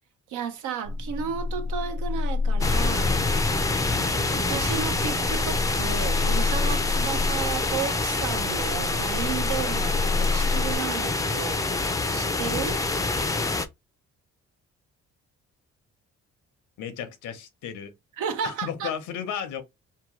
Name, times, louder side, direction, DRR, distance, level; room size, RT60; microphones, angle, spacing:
voice 1, 0.3-3.2 4.3-11.6 12.1-12.8 18.2-18.9, right 7 dB, 85° right, 0.7 m, -33 dB
sound 1, 0.8-10.8, left 3 dB, 50° right, 0.6 m, -29 dB
sound 2, 2.6-13.7, left 3 dB, 10° left, 0.4 m, -26 dB
voice 2, 16.8-17.9 18.4-19.6, left 8 dB, 80° left, 0.8 m, -34 dB
2.8 x 2.2 x 3.0 m
cardioid pair, 90°, 30 cm